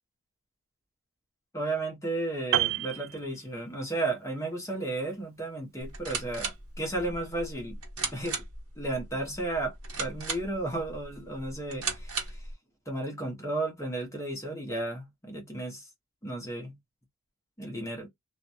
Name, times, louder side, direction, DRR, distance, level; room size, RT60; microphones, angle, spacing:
voice 1, 1.5-7.8 8.1-8.4 8.8-12.4 12.9-15.9 16.2-16.7 17.6-18.1, right 2 dB, 15° left, 0.9 m, -33 dB
Piano, 2.5-4.0 4.2-4.5, right 13 dB, 60° right, 0.3 m, -30 dB
sound 1, 5.8-12.5, right 4 dB, 85° right, 1.1 m, -37 dB
2.5 x 2.2 x 2.6 m
head